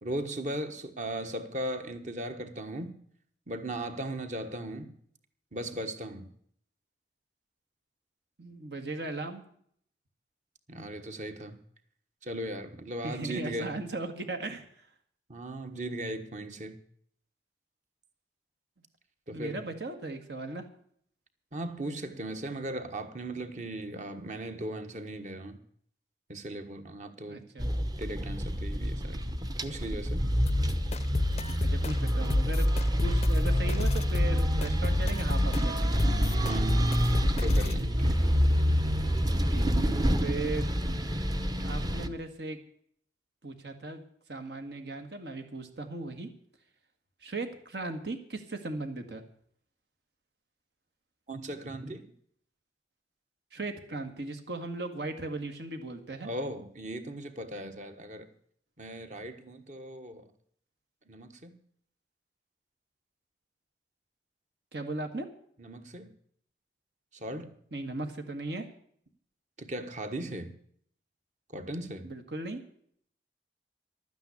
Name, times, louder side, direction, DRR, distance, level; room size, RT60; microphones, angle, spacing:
voice 1, 0.0-2.9 3.5-4.9 5.5-6.3 10.7-11.6 12.2-13.7 15.3-16.8 19.3-19.6 21.5-25.6 26.3-27.4 28.0-29.3 29.6-30.2 36.4-38.5 51.3-52.1 56.2-58.3 58.8-60.3 61.1-61.5 65.6-66.1 67.1-67.5 69.6-70.5 71.5-72.1, right 1 dB, 45° right, 8 dB, 1.4 m, -38 dB
voice 2, 8.4-9.4 13.0-14.9 19.3-20.6 27.3-27.7 31.6-32.7 33.0-36.0 39.5-40.7 40.9-41.1 41.6-42.6 43.4-44.0 44.3-46.3 47.2-49.2 53.5-56.3 64.7-65.3 67.7-68.7 72.0-72.6, right 2 dB, 70° right, 6 dB, 1.8 m, -37 dB
sound 1, 27.6-42.1, equal, 20° right, 0.8 m, -27 dB
sound 2, 30.5-37.8, left 2 dB, 35° left, 0.5 m, -32 dB
12.0 x 9.3 x 8.4 m, 0.63 s
head